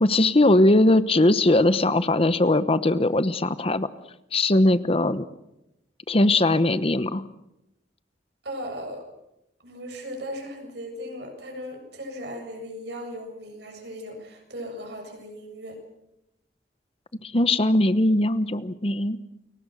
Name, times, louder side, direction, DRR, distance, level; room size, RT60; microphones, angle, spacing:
voice 1, 0.0-3.9 4.3-5.2 6.1-7.2 17.2-19.2, left 2 dB, 35° left, 13 dB, 1.0 m, -20 dB
voice 2, 8.4-9.1 9.6-15.8, equal, 70° right, 3 dB, 7.4 m, -37 dB
30.0 x 23.0 x 6.4 m, 0.88 s
head